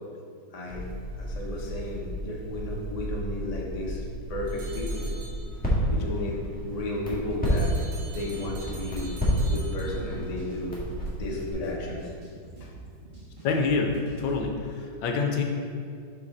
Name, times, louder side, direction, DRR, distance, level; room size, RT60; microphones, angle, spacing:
voice 1, 0.5-0.9 1.2-5.1 5.9-7.7 8.1-9.1 9.5-10.8 11.2-12.1 12.6-12.7, left 1 dB, 35° left, -3 dB, 0.6 m, -33 dB
Crackle, 0.7-11.5, equal, 5° left, 1.4 m, -31 dB
sound 1, 4.5-5.8 7.5-10.5, right 2 dB, 85° right, 1.7 m, -47 dB
sound 2, 9.6-14.5, right 2 dB, 25° right, 1.5 m, -45 dB
voice 2, 13.4-15.4, left 4 dB, 75° left, 2 dB, 1.4 m, -27 dB
5.8 x 5.6 x 4.0 m, 2.3 s
omnidirectional pair, 2.2 m